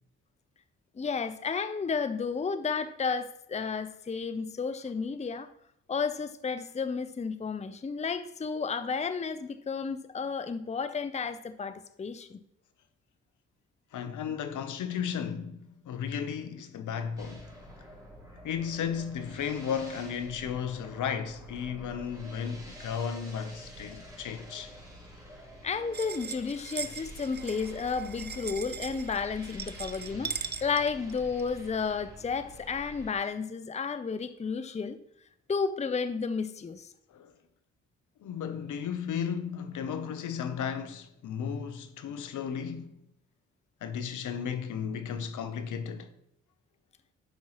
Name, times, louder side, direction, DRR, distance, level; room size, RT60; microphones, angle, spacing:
voice 1, 1.0-5.5 5.9-12.4 25.6-35.0 35.5-36.9, left 5 dB, 20° left, 0.6 m, -32 dB
voice 2, 13.9-17.5 18.4-24.7 37.1-37.3 38.2-42.9 43.8-46.1, left 7 dB, 65° left, 0.9 m, -34 dB
sound 1, 17.2-33.1, equal, 10° right, 3.2 m, -48 dB
sound 2, 25.9-31.5, right 6 dB, 30° right, 0.7 m, -40 dB
11.5 x 5.4 x 3.0 m
hypercardioid pair, 50°, 33 cm